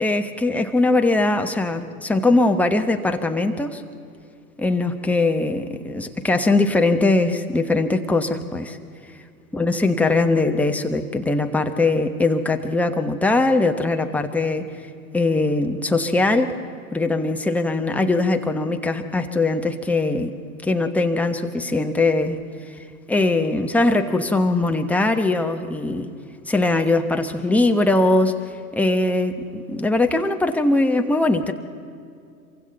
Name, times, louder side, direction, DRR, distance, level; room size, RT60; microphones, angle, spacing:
voice 1, 0.0-3.8 4.6-8.8 9.5-14.7 15.1-16.6 16.9-20.3 20.6-22.4 22.7-26.1 26.5-31.5, left 2 dB, 5° left, 5 dB, 1.1 m, -21 dB
26.5 x 24.0 x 4.1 m, 2.3 s
figure-of-eight pair, 90°, 45 cm